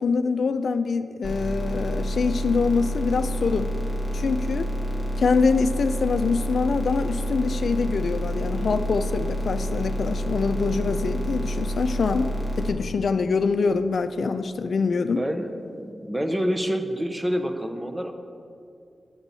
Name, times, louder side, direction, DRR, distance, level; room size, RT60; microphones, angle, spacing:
voice 1, 0.0-3.7 4.1-4.7 5.2-15.2, left 4 dB, 75° left, 9 dB, 0.4 m, -24 dB
sound 1, 1.2-12.7, equal, 35° right, 1.3 m, -28 dB
voice 2, 15.2-18.1, equal, 15° right, 7 dB, 0.7 m, -27 dB
9.5 x 7.1 x 4.1 m, 2.4 s
cardioid pair, 70°, 0 cm